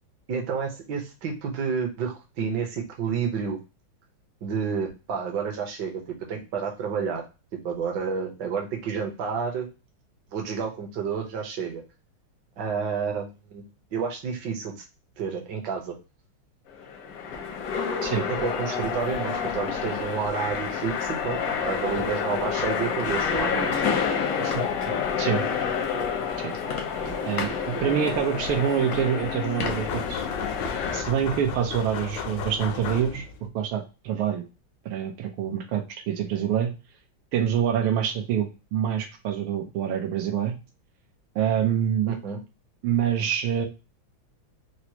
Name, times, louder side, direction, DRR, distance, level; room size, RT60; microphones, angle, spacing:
voice 1, 0.3-3.6 4.4-6.0 6.3-7.2 7.6-9.7 10.3-11.8 12.6-13.6 13.9-14.8 15.2-15.9 18.4-23.9 24.4-24.9 27.1-27.3 42.1-42.4, right 6 dB, 65° right, 1 dB, 1.4 m, -30 dB
sound 1, 16.7-31.0, left 6 dB, 70° left, 0.8 m, -28 dB
voice 2, 27.2-30.2 30.9-34.4 34.8-36.7 37.3-40.5 41.3-42.2 42.8-43.7, right 9 dB, 85° right, 4 dB, 1.6 m, -26 dB
sound 2, 29.6-33.5, left 7 dB, 85° left, 1.4 m, -34 dB
4.6 x 2.0 x 2.8 m, 0.29 s
omnidirectional pair, 2.3 m